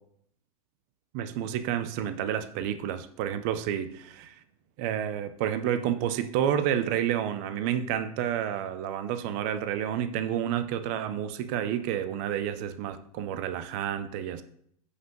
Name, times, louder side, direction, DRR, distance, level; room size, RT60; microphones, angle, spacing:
voice 1, 1.1-4.4 4.8-14.4, right 10 dB, 25° right, 0.3 m, -30 dB
7.8 x 5.5 x 2.9 m
supercardioid pair, 165°, 19 cm